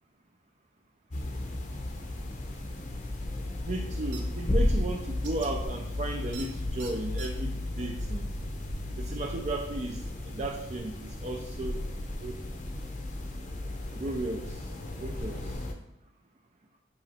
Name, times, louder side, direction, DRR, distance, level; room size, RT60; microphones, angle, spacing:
sound 1, 1.1-15.7, left 1 dB, 40° left, 0.7 m, -34 dB
voice 1, 3.7-8.3 9.0-11.8 12.2-12.4 14.0-14.7 15.0-15.6, right 2 dB, 40° right, 2 dB, 0.5 m, -35 dB
sound 2, 4.1-4.2 5.2-5.5 6.3-6.5 6.8-7.3, right 6 dB, 70° right, 0.8 m, -43 dB
8.0 x 3.0 x 4.3 m, 0.80 s
head